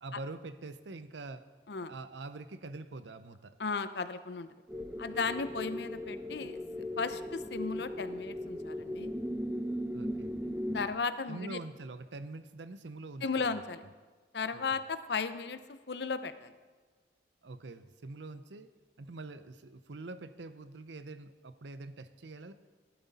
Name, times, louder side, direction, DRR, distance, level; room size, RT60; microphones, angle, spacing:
voice 1, 0.0-1.5 1.9-3.5 5.2-5.4 9.9-10.5 11.3-13.6 14.5-14.8 17.4-18.7 19.0-22.5, right 3 dB, 75° right, 12 dB, 0.7 m, -45 dB
voice 2, 3.6-4.5 5.0-9.1 10.7-11.6 13.2-13.8 14.3-16.5, left 4 dB, 65° left, 12 dB, 0.7 m, -35 dB
sound 1, 4.7-10.9, equal, 10° right, 0.9 m, -37 dB
16.0 x 11.0 x 4.2 m, 1.4 s
head